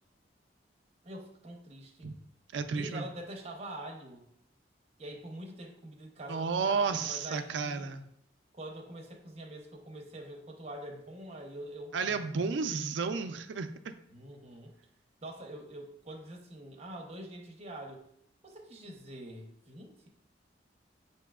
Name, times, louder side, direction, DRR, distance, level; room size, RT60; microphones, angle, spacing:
voice 1, 1.0-2.1 2.7-4.3 5.0-7.9 8.5-12.2 14.1-14.7 15.2-18.0 18.4-20.1, right 1 dB, 35° right, 2 dB, 0.8 m, -45 dB
voice 2, 2.5-3.0 6.3-8.0 11.9-13.9, right 5 dB, 70° right, 9 dB, 0.4 m, -32 dB
6.8 x 2.8 x 2.3 m, 0.72 s
head